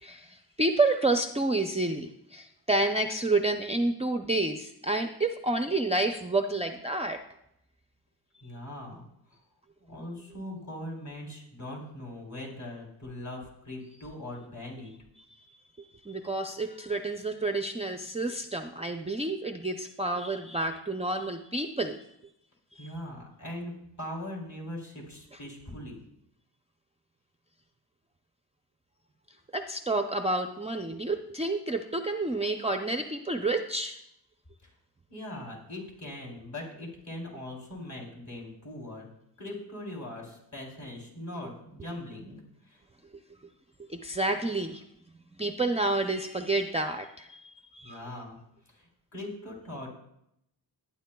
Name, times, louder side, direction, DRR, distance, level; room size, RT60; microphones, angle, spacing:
voice 1, 0.0-7.2 15.8-22.0 22.8-22.9 29.5-34.0 43.9-44.8 45.4-48.0, right 2 dB, 15° right, 5 dB, 0.4 m, -29 dB
voice 2, 8.4-9.4 9.8-14.9 22.8-23.7 24.0-26.0 34.6-34.7 35.1-39.1 39.4-42.8 47.8-48.4 48.6-49.9, left 1 dB, 40° left, -2 dB, 3.4 m, -41 dB
20.0 x 9.6 x 2.2 m, 0.79 s
wide cardioid pair, 145°, 42 cm